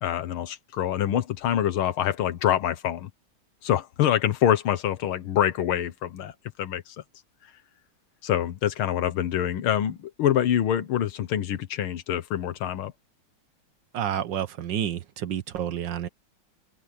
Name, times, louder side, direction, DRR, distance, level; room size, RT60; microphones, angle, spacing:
voice 1, 0.0-3.1 3.6-6.3 6.6-7.0 8.2-12.9, left 10 dB, 90° left, 2.0 m, -25 dB
voice 2, 13.9-16.1, right 10 dB, 65° right, 1.5 m, -29 dB
omnidirectional pair, 2.2 m